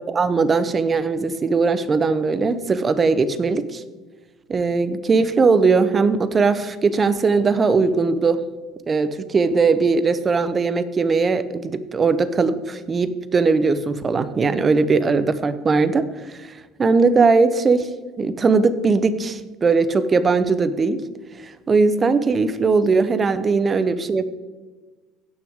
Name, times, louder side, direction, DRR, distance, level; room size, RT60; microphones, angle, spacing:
voice 1, 0.1-3.8 4.5-8.4 8.9-16.5 16.8-17.9 18.2-21.0 21.4-24.2, right 4 dB, 30° right, 13 dB, 0.7 m, -19 dB
16.5 x 6.0 x 3.6 m, 1.3 s
supercardioid pair, 105°, 0 cm